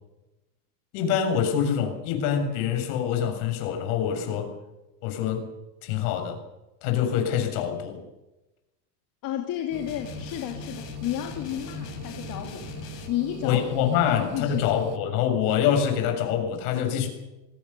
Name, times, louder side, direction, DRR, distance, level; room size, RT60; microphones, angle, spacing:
voice 1, 0.9-4.5 5.0-5.5 5.8-6.4 6.8-8.0 13.4-17.1, left 8 dB, 65° left, 6 dB, 7.0 m, -25 dB
voice 2, 9.2-12.7 13.1-13.6 14.1-14.7, left 12 dB, 45° left, 3 dB, 2.9 m, -32 dB
sound 1, 9.7-15.0, right 8 dB, 35° right, 2.2 m, -42 dB
sound 2, 9.9-13.1, left 11 dB, 85° left, 4.8 m, -40 dB
27.0 x 18.5 x 7.0 m, 1.0 s
supercardioid pair, 130°, 46 cm